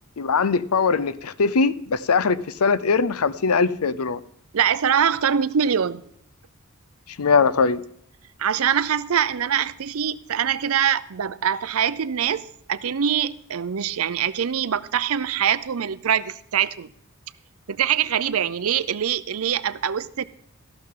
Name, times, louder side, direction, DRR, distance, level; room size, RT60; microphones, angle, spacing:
voice 1, 0.2-4.2 7.2-7.8, left 5 dB, 90° left, 0.6 m, -21 dB
voice 2, 4.5-6.0 8.4-16.9 17.7-20.2, right 8 dB, 75° right, 0.5 m, -23 dB
14.0 x 12.0 x 3.8 m
head